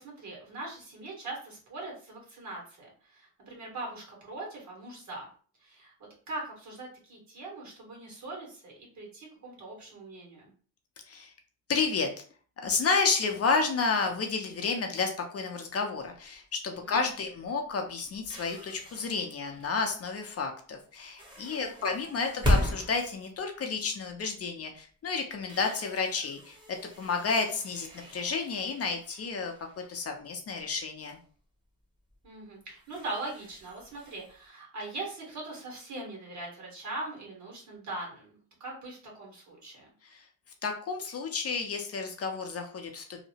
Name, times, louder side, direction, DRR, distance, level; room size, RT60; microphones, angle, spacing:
voice 1, 0.0-5.3 5.6-5.9 6.3-10.5 16.8-17.0 21.5-22.0 32.2-39.9, right 2 dB, 55° right, -1 dB, 1.5 m, -41 dB
voice 2, 11.7-12.1 12.6-29.5 29.9-31.2 40.0-40.2 40.6-43.3, left 4 dB, 45° left, 4 dB, 0.5 m, -31 dB
sound 1, 16.2-16.3 16.9-17.1 17.4-20.0 21.0-24.4 24.8-24.9 25.3-30.8 31.1-31.2 32.1-32.2 32.6-34.5, left 1 dB, 15° right, 0.9 m, -36 dB
2.8 x 2.0 x 2.7 m, 0.43 s
cardioid pair, 110°, 35 cm